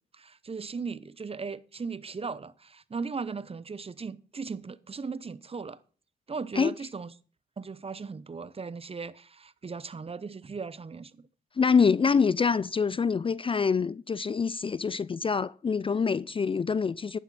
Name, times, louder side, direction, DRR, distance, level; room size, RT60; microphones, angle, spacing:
voice 1, 0.1-5.8 6.3-7.1 7.6-11.3, right 5 dB, 35° right, 0.8 m, -37 dB
voice 2, 11.6-17.2, left 5 dB, 30° left, 0.4 m, -25 dB
10.5 x 9.3 x 4.2 m
supercardioid pair, 55°, 17 cm